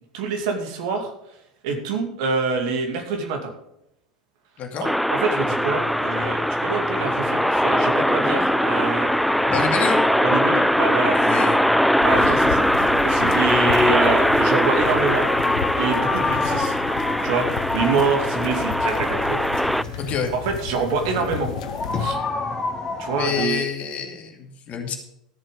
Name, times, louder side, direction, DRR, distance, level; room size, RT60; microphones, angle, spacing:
voice 1, 0.1-1.1 1.6-3.5 4.8-9.1 10.2-11.2 12.0-12.7 13.0-15.3 15.7-16.8 17.2-20.0 20.3-21.5 22.0-22.2 23.0-23.6, right 4 dB, 55° right, 4 dB, 2.4 m, -26 dB
sound 1, 4.8-19.8, equal, ahead, 0.3 m, -21 dB
sound 2, 5.4-23.4, left 3 dB, 15° left, 2.7 m, -30 dB
voice 2, 9.5-10.0 11.1-11.6 12.3-12.4 20.0-20.3 23.2-25.0, left 6 dB, 35° left, 3 dB, 2.5 m, -27 dB
sound 3, 12.0-22.1, left 8 dB, 65° left, 1.1 m, -34 dB
13.5 x 7.7 x 5.1 m, 0.79 s
figure-of-eight pair, 80°, 4 cm